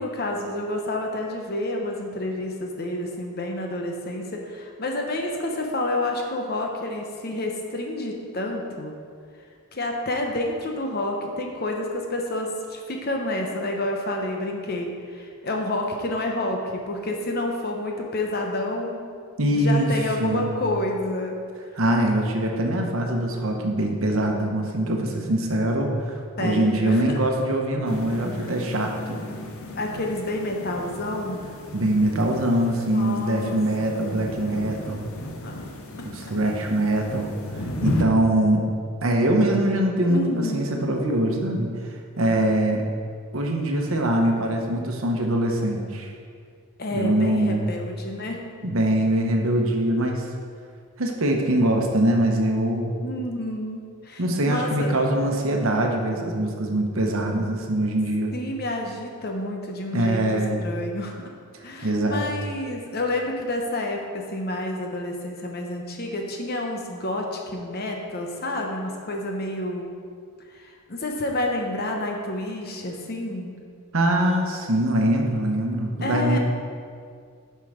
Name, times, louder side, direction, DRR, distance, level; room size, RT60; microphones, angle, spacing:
voice 1, 0.0-8.9 9.7-19.1 19.5-21.4 26.4-27.2 29.8-31.5 32.8-34.0 35.4-35.6 36.0-36.1 40.0-40.9 46.8-48.4 53.0-54.9 58.3-61.3 61.6-69.9 70.5-73.6 76.0-76.4, left 1 dB, 45° left, 1 dB, 0.9 m, -29 dB
voice 2, 19.4-19.9 20.2-20.6 21.8-29.2 31.7-35.1 36.0-38.7 39.0-41.7 42.2-42.8 43.3-46.1 46.9-47.7 48.6-50.3 51.0-52.9 54.2-58.3 59.9-60.6 61.8-62.3 73.9-76.4, right 1 dB, 65° right, 2 dB, 1.0 m, -23 dB
sound 1, 27.9-38.0, left 1 dB, 70° left, 0.8 m, -35 dB
7.5 x 5.6 x 5.0 m, 2.2 s
head